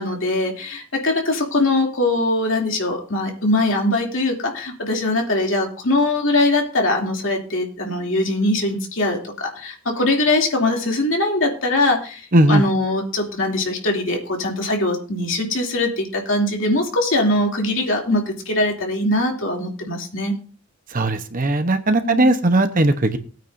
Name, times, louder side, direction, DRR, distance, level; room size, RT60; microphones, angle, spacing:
voice 1, 0.0-12.2 12.5-20.3 22.0-22.3, left 2 dB, 60° left, 0 dB, 2.9 m, -21 dB
voice 2, 12.3-12.6 20.9-23.2, right 1 dB, 40° right, 8 dB, 1.0 m, -17 dB
18.5 x 9.2 x 2.7 m, 0.38 s
head